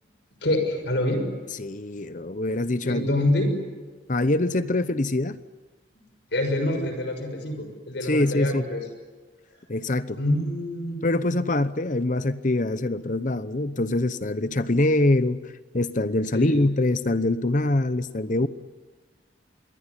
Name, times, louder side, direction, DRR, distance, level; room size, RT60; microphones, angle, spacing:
voice 1, 0.4-1.3 2.8-3.5 6.3-8.8 10.2-11.0 16.3-16.6, left 1 dB, 65° left, 7 dB, 6.2 m, -26 dB
voice 2, 1.6-3.1 4.1-5.4 8.0-8.6 9.7-10.2 11.0-15.4 15.7-18.5, left 2 dB, 40° left, 13 dB, 0.9 m, -24 dB
26.5 x 22.0 x 9.9 m, 1.4 s
head